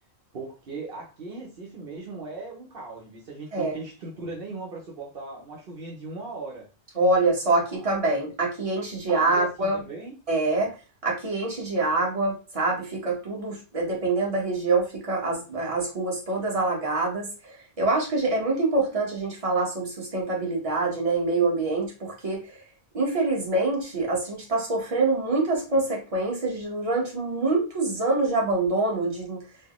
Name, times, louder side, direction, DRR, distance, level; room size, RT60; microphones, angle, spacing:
voice 1, 0.3-6.7 7.6-7.9 9.1-10.2, right 3 dB, 65° right, -2 dB, 1.0 m, -38 dB
voice 2, 7.0-9.8 10.3-10.7 11.0-22.6 22.9-29.4, right 2 dB, 35° right, -2 dB, 1.2 m, -25 dB
4.5 x 2.1 x 3.0 m, 0.31 s
omnidirectional pair, 1.1 m